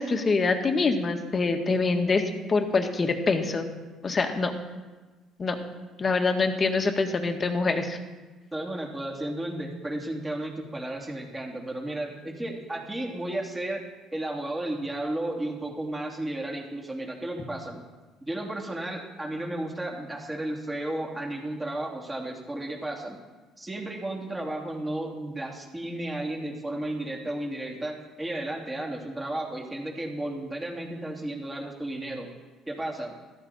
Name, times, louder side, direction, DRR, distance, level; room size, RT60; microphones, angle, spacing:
voice 1, 0.0-2.2 2.5-3.7 4.0-4.5 5.4-5.6 6.0-8.0, left 3 dB, 30° left, 5 dB, 1.7 m, -25 dB
voice 2, 8.5-13.8 14.1-17.8 18.2-23.2 23.6-32.3 32.7-33.2, right 1 dB, 15° right, 0 dB, 2.8 m, -33 dB
14.0 x 13.5 x 4.3 m, 1.3 s
cardioid pair, 100°, 0 cm